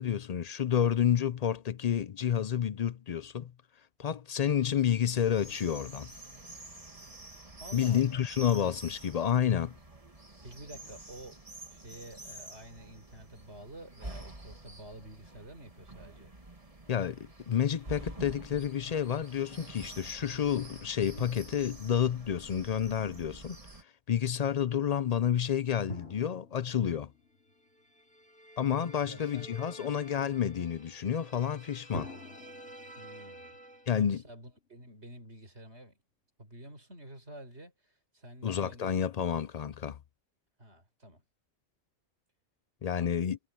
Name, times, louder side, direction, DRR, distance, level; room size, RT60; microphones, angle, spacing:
voice 1, 0.0-3.5 4.0-6.1 7.7-9.7 16.9-23.6 24.1-27.1 28.6-32.1 33.9-34.2 38.4-40.0 42.8-43.4, left 9 dB, 50° left, 0.5 m, -30 dB
sound 1, 5.1-23.8, right 2 dB, 30° right, 2.3 m, -48 dB
voice 2, 7.6-8.3 10.4-16.3 24.4-24.5 29.0-30.0 33.0-33.6 34.0-36.0 36.4-39.0 40.6-41.2 43.0-43.3, right 1 dB, 70° right, 5.6 m, -50 dB
Drum, 21.2-22.9 25.9-28.4 31.9-35.1, left 1 dB, 80° left, 4.6 m, -49 dB
sound 2, 27.7-34.0, right 1 dB, 5° left, 2.2 m, -51 dB
omnidirectional pair, 1.2 m